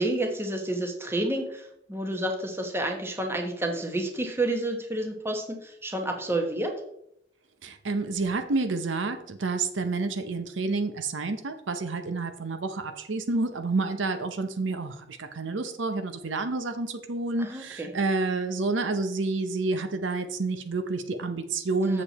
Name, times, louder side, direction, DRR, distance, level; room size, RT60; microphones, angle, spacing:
voice 1, 0.0-6.7 17.4-17.9 21.8-22.0, right 1 dB, 15° right, 3 dB, 1.2 m, -30 dB
voice 2, 7.6-22.0, right 3 dB, 75° right, 8 dB, 0.8 m, -29 dB
7.2 x 6.9 x 4.1 m, 0.74 s
head